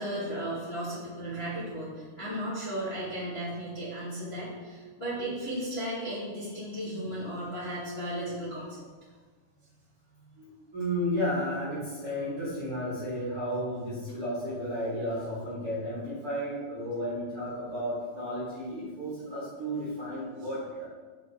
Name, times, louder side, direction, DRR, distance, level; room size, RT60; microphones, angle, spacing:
voice 1, 0.0-8.8, right 1 dB, 20° left, -11 dB, 1.9 m, -35 dB
voice 2, 10.4-20.8, equal, 45° right, -9 dB, 2.1 m, -33 dB
6.3 x 5.4 x 5.0 m, 1.4 s
omnidirectional pair, 4.5 m